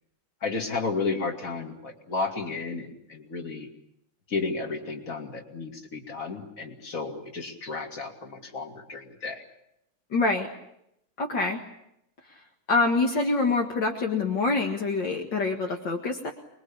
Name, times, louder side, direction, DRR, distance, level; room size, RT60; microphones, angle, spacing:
voice 1, 0.4-3.7 4.3-9.4 15.7-15.8, left 4 dB, 40° left, 4 dB, 2.9 m, -33 dB
voice 2, 10.1-10.5 11.2-11.6 12.7-16.3, left 3 dB, 65° left, 2 dB, 2.4 m, -25 dB
25.0 x 22.0 x 8.7 m, 0.80 s
omnidirectional pair, 2.2 m